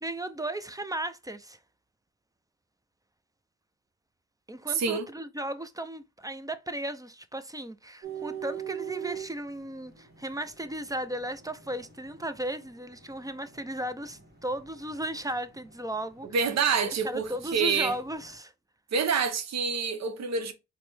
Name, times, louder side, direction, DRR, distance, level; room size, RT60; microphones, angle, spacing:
voice 1, 0.0-1.6 4.5-16.3 16.8-18.5, right 1 dB, 10° right, 0.4 m, -35 dB
voice 2, 4.7-5.1 16.3-17.9 18.9-20.5, right 5 dB, 65° right, 0.7 m, -27 dB
sound 1, 8.0-18.4, right 9 dB, 35° right, 1.3 m, -45 dB
4.1 x 2.1 x 3.2 m
supercardioid pair, 50°, 29 cm